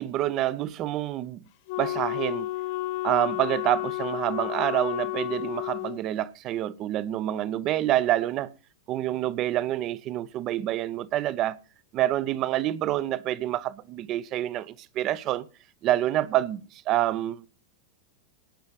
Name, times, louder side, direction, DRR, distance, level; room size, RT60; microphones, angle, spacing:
voice 1, 0.0-1.4 1.8-2.5 3.0-8.5 8.9-11.6 11.9-15.5 15.8-17.5, right 13 dB, 35° right, 0.9 m, -27 dB
Wind instrument woodwind instrument, 1.7-6.0, left 18 dB, 45° left, 0.6 m, -31 dB
18.0 x 6.6 x 5.1 m
figure-of-eight pair, 90°, 0 cm